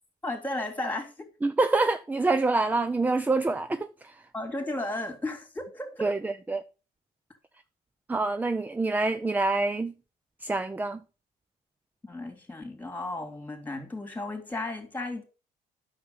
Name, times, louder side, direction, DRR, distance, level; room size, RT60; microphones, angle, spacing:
voice 1, 0.2-1.3 4.3-6.1 12.0-15.2, left 2 dB, 10° left, 3.1 m, -34 dB
voice 2, 1.4-4.2 6.0-6.6 8.1-9.9 10.4-11.0, right 3 dB, 10° right, 0.5 m, -26 dB
9.6 x 6.6 x 5.4 m
cardioid pair, 110°, 17 cm